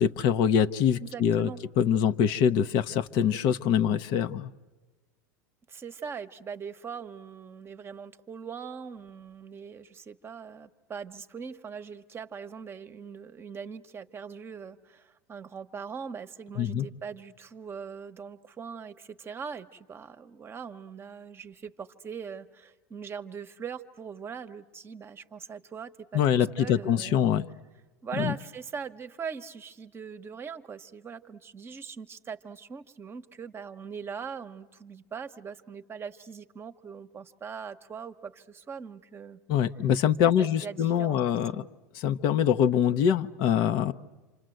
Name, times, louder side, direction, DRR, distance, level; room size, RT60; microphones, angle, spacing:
voice 1, 0.0-1.5 1.8-4.5 16.6-16.9 26.1-27.5 28.2-28.3 39.5-41.6 41.9-43.9, left 8 dB, 55° left, 9 dB, 0.8 m, -24 dB
voice 2, 1.0-1.6 5.7-26.2 26.6-27.3 28.0-39.4 40.2-41.2 41.5-41.7, right 6 dB, 25° right, 9 dB, 1.0 m, -41 dB
28.5 x 26.0 x 7.8 m, 1.2 s
hypercardioid pair, 100°, 9 cm